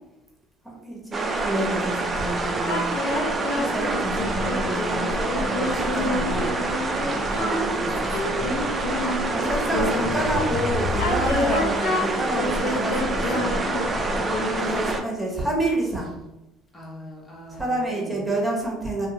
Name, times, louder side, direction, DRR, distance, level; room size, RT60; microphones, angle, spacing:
voice 1, 0.6-3.0 3.5-6.6 7.1-8.6 9.1-13.6 14.1-14.3 14.6-16.1 17.5-19.1, right 1 dB, ahead, -3 dB, 1.2 m, -29 dB
sound 1, 1.1-15.0, right 2 dB, 30° right, 0.4 m, -27 dB
sound 2, 2.6-10.2 10.9-14.9, left 2 dB, 80° left, 0.8 m, -28 dB
voice 2, 6.7-7.2 12.1-12.5 13.8-14.7 16.7-18.3, equal, 25° left, -3 dB, 1.0 m, -42 dB
sound 3, 9.7-12.7, left 4 dB, 55° left, 0.4 m, -32 dB
2.5 x 2.3 x 2.9 m, 0.92 s
supercardioid pair, 75°, 0 cm